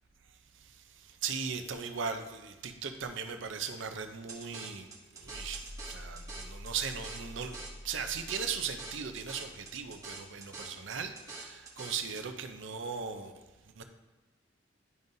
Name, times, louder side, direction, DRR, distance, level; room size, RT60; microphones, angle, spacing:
voice 1, 0.5-4.9 5.1-13.4 13.8-13.9, right 6 dB, 80° right, 7 dB, 0.6 m, -38 dB
sound 1, 4.3-12.2, right 3 dB, 15° right, 0.9 m, -46 dB
sound 2, 5.2-10.3, equal, 65° left, 2.0 m, -48 dB
10.5 x 5.3 x 2.7 m, 1.1 s
head